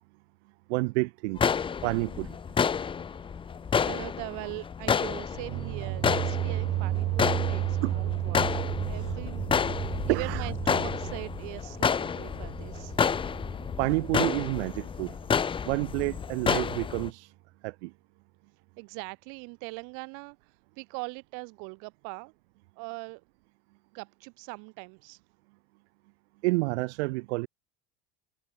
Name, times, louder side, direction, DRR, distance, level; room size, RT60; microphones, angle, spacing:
voice 1, 0.7-1.5 1.8-2.4 7.8-8.0 8.9-9.2 10.1-10.5 13.8-15.2 15.6-17.3 17.6-17.9 26.4-27.5, right 24 dB, 85° right, 1.2 m, -29 dB
sound 1, 1.4-17.1, left 6 dB, 15° left, 0.5 m, -30 dB
voice 2, 3.7-9.5 9.8-13.0 18.8-22.3 22.8-23.2 23.9-25.2, right 34 dB, 65° right, 1.9 m, -41 dB
sound 2, 5.3-14.2, right 16 dB, 45° right, 1.9 m, -33 dB
supercardioid pair, 130°, 33 cm